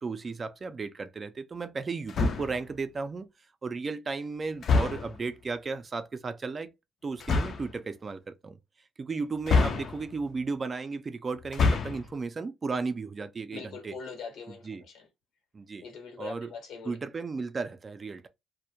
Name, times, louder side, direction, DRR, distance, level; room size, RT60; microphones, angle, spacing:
voice 1, 0.0-3.3 3.6-6.7 7.0-8.6 9.0-13.9 14.6-14.8 15.5-15.8 16.2-16.5 16.8-18.3, right 4 dB, 35° right, 0.4 m, -34 dB
sound 1, 2.1-2.7 4.6-5.2 7.2-7.7 9.4-10.2 11.4-12.1, left 4 dB, 55° left, 0.4 m, -26 dB
voice 2, 13.5-15.1 15.8-17.0, left 5 dB, 85° left, 1.0 m, -42 dB
2.2 x 2.1 x 2.6 m
cardioid pair, 90°, 0 cm